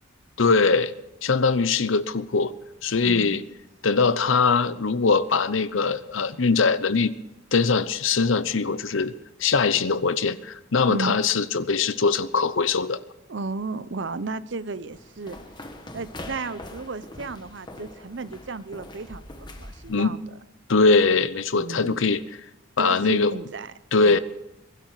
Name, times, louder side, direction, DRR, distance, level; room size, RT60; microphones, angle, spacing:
voice 1, 0.4-0.9 1.2-2.5 2.8-3.4 3.8-7.1 7.5-9.1 9.4-13.0 19.9-20.2 20.7-22.2 22.8-23.4 23.9-24.2, left 4 dB, 75° left, 15 dB, 0.8 m, -21 dB
voice 2, 3.0-3.4 10.9-11.2 13.3-15.4 15.9-20.2 21.5-22.0 22.8-23.7 24.0-24.2, right 3 dB, 60° right, 14 dB, 0.7 m, -33 dB
sound 1, 14.9-20.0, left 1 dB, 20° left, 1.3 m, -42 dB
22.0 x 12.0 x 4.9 m, 0.94 s
head